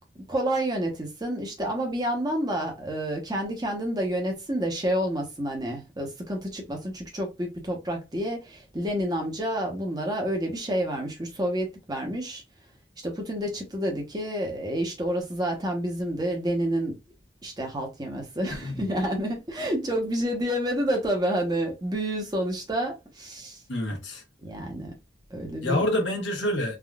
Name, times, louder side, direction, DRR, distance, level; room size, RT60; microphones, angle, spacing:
voice 1, 0.3-12.4 13.0-16.9 17.4-23.6 24.4-24.9 25.3-25.9, right 1 dB, 20° right, 0.8 m, -29 dB
voice 2, 18.5-18.8 23.7-24.2 25.6-26.8, left 1 dB, 80° left, 1.0 m, -27 dB
3.5 x 2.3 x 2.3 m
head